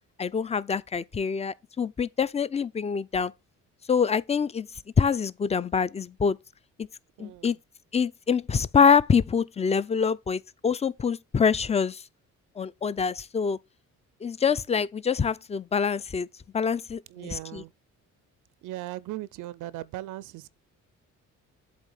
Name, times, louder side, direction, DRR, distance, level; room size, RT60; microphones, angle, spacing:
voice 1, 0.2-3.3 3.9-4.7 5.0-6.4 7.2-7.6 7.9-12.0 12.6-13.6 14.2-16.3 16.5-17.6, left 6 dB, 20° left, 0.4 m, -25 dB
voice 2, 7.2-7.5 17.1-17.7 18.6-20.5, right 15 dB, 85° right, 0.5 m, -38 dB
8.0 x 3.3 x 6.4 m
cardioid pair, 90°, 30 cm